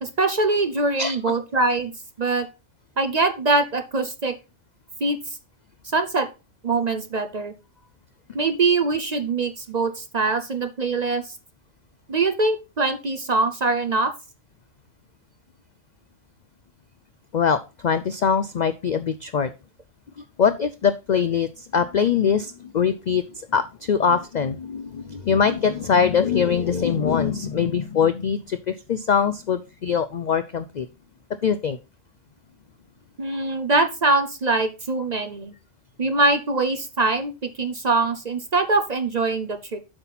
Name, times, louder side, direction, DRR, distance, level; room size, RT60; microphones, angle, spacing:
voice 1, 0.0-1.9 2.2-2.5 3.0-4.4 5.0-5.4 5.9-6.3 6.6-7.5 8.3-11.4 12.1-14.1 33.2-35.5 36.0-39.8, right 3 dB, 40° right, 8 dB, 0.7 m, -23 dB
voice 2, 17.3-19.5 20.4-30.9 31.4-31.8, left 6 dB, 60° left, 11 dB, 0.4 m, -22 dB
7.9 x 5.8 x 4.1 m, 0.29 s
omnidirectional pair, 1.3 m